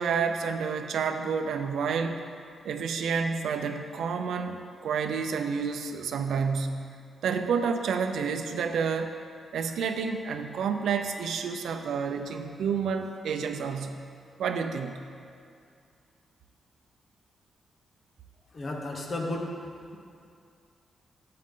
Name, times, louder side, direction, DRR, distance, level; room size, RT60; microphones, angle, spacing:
voice 1, 0.0-2.2 2.6-6.9 7.2-9.1 9.5-14.0 14.4-15.0, right 6 dB, 85° right, 6 dB, 0.5 m, -29 dB
voice 2, 18.5-19.5, left 2 dB, 35° left, 1 dB, 1.1 m, -33 dB
11.5 x 7.6 x 3.8 m, 2.4 s
wide cardioid pair, 150°, 0 cm